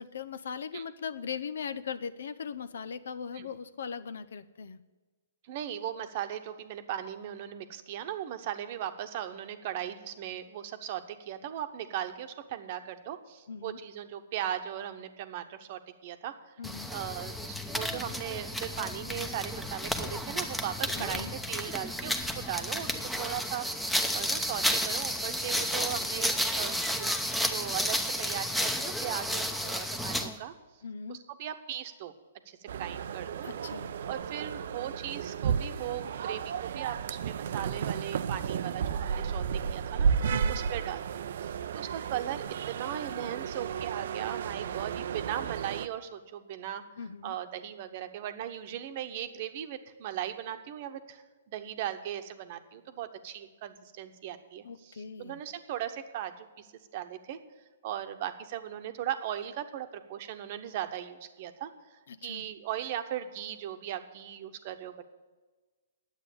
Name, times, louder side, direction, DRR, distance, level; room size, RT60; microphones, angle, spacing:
voice 1, 0.0-4.8 13.5-13.8 16.6-16.9 20.9-21.3 30.8-31.2 33.4-34.0 40.3-40.6 47.0-47.3 54.6-55.4 62.1-62.5, left 6 dB, 70° left, 14 dB, 0.6 m, -39 dB
voice 2, 5.4-16.6 16.9-22.9 23.2-27.1 27.4-30.5 31.1-32.1 32.5-33.5 34.1-46.8 47.2-56.7 56.9-57.4 57.8-65.0, right 11 dB, 45° right, 9 dB, 1.0 m, -38 dB
sound 1, 16.6-30.4, equal, ahead, 0.8 m, -32 dB
sound 2, 32.7-45.9, right 7 dB, 65° right, 0.5 m, -33 dB
10.0 x 8.1 x 8.4 m, 1.3 s
hypercardioid pair, 130°, 0 cm